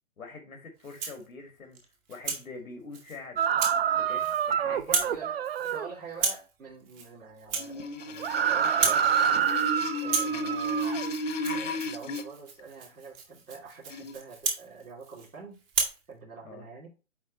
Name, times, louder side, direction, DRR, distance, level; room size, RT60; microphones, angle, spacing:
voice 1, 0.2-1.8 2.1-3.5 3.9-5.1 10.3-10.6 16.4-16.7, left 3 dB, 85° left, 2 dB, 2.1 m, -44 dB
Rattle (instrument), 0.8-1.3 1.7-2.4 2.9-3.2 3.6-3.8 4.1-4.5 4.8-5.2 5.4-5.8 6.1-6.5 6.9-7.1 7.4-8.4 8.6-9.1 9.4-9.7 10.0-15.3 15.7-16.0, right 5 dB, 10° right, 0.7 m, -33 dB
sound 1, 3.4-5.9 8.2-11.1, right 8 dB, 45° right, 0.5 m, -27 dB
voice 2, 5.0-9.5 10.0-11.0 11.5-15.6 16.1-16.9, right 4 dB, 90° right, -6 dB, 3.1 m, -45 dB
sound 2, 7.6-12.2 13.9-14.1, equal, 65° left, 1.3 m, -33 dB
8.4 x 3.5 x 4.0 m, 0.32 s
hypercardioid pair, 145°, 41 cm